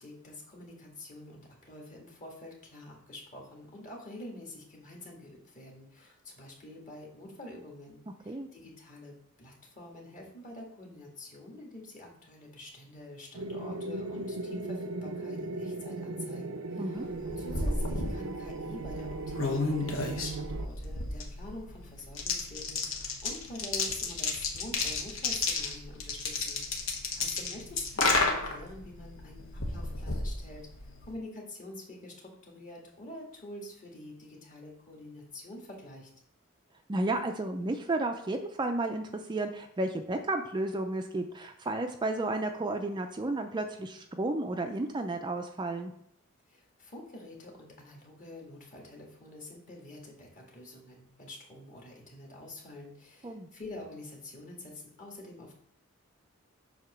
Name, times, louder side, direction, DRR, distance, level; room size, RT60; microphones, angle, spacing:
voice 1, 0.0-30.7 31.0-36.1 46.5-55.5, left 1 dB, 40° left, -1 dB, 1.7 m, -47 dB
sound 1, 13.3-20.7, right 2 dB, 85° right, 0.6 m, -37 dB
sound 2, 17.1-31.1, left 3 dB, 65° left, 1.1 m, -33 dB
voice 2, 36.9-45.9 53.2-53.5, right 2 dB, 20° right, 5 dB, 0.4 m, -32 dB
7.4 x 2.8 x 6.0 m, 0.70 s
head